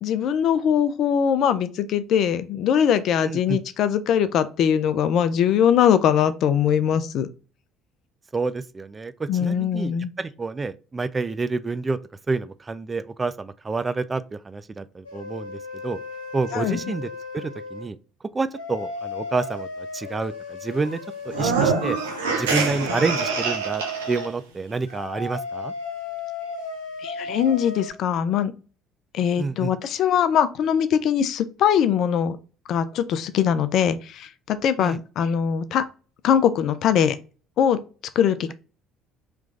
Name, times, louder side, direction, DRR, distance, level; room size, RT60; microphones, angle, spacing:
voice 1, 0.0-7.3 9.3-10.1 16.5-16.8 27.0-28.5 29.1-32.4 32.7-35.9 36.2-37.2 37.6-37.8 38.2-38.5, left 8 dB, 55° left, 0.4 m, -21 dB
voice 2, 3.2-3.6 8.3-12.0 12.3-16.0 16.3-17.1 17.3-18.0 18.3-21.0 21.3-22.0 22.4-25.7 29.4-29.7 34.8-35.0, right 3 dB, 25° right, 0.3 m, -28 dB
sound 1, 15.0-17.9 18.5-24.3 24.9-27.9, left 2 dB, 90° left, 1.2 m, -35 dB
sound 2, 21.3-24.3, right 4 dB, 80° right, 0.6 m, -25 dB
3.3 x 3.1 x 2.5 m
hypercardioid pair, 60°, 0 cm